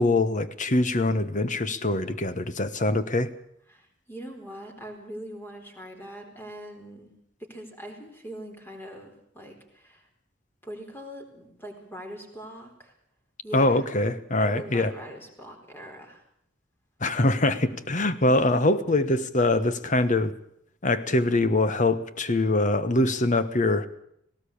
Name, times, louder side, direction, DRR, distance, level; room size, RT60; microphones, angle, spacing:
voice 1, 0.0-3.3 13.5-14.9 17.0-20.3 20.8-23.9, left 2 dB, 45° left, 12 dB, 1.3 m, -23 dB
voice 2, 3.7-7.1 7.5-10.0 10.6-12.9 13.4-13.8 14.4-16.2 18.2-18.7, equal, 10° left, 3 dB, 4.4 m, -42 dB
18.5 x 18.0 x 8.7 m, 0.72 s
head